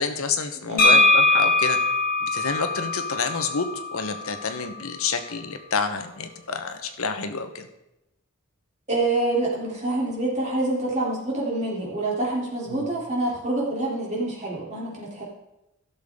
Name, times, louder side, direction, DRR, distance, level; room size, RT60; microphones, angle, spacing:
voice 1, 0.0-1.8 2.2-7.7 12.7-12.9, left 5 dB, 70° left, 8 dB, 1.0 m, -28 dB
voice 2, 0.7-1.0 8.9-15.2, right 2 dB, 30° right, -4 dB, 3.1 m, -26 dB
sound 1, 0.8-4.6, left 2 dB, 40° left, 1.7 m, -21 dB
15.5 x 6.8 x 3.6 m, 0.90 s
head